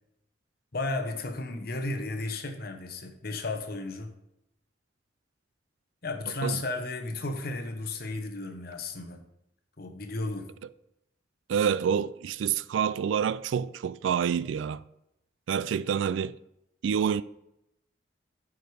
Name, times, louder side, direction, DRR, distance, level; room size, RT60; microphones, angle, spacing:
voice 1, 0.7-4.1 6.0-9.2 9.8-10.5, left 2 dB, 55° left, 1.0 m, -34 dB
voice 2, 11.5-14.8 15.5-16.4 16.8-17.2, right 7 dB, 90° right, 0.3 m, -27 dB
9.2 x 4.9 x 4.9 m
head